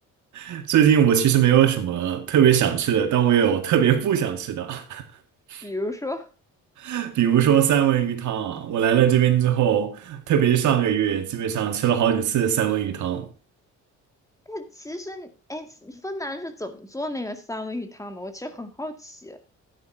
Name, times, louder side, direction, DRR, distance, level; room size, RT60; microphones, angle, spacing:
voice 1, 0.3-5.0 5.5-5.7 6.8-13.3, right 9 dB, 70° right, 2.0 m, -21 dB
voice 2, 5.6-6.3 14.5-19.4, left 1 dB, 10° left, 2.0 m, -33 dB
13.0 x 10.0 x 2.7 m
cardioid pair, 90°, 30 cm